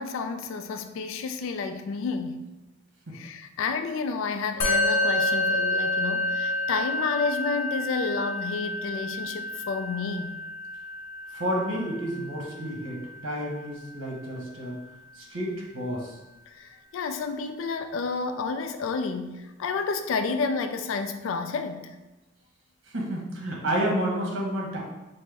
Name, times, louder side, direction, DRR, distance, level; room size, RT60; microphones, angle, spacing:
voice 1, 0.0-2.5 3.1-10.4 16.5-22.0, left 4 dB, 75° left, 0.3 m, -30 dB
Musical instrument, 4.6-14.1, left 1 dB, 50° left, 0.7 m, -29 dB
voice 2, 11.3-14.8 15.1-16.2 22.9-24.8, right 1 dB, 85° right, 1.1 m, -30 dB
5.6 x 2.1 x 3.3 m
head